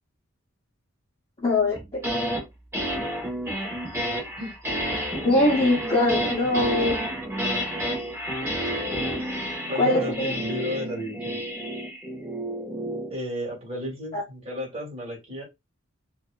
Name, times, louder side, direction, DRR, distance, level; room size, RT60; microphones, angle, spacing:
voice 1, 1.4-2.0 5.2-7.0 9.8-10.3 14.1-14.2, left 2 dB, 25° left, 0.6 m, -22 dB
sound 1, 1.7-2.4 2.7-13.1, equal, 10° right, 0.9 m, -30 dB
voice 2, 9.7-11.4 13.1-15.4, left 1 dB, 30° right, 1.2 m, -33 dB
2.6 x 2.2 x 2.3 m
head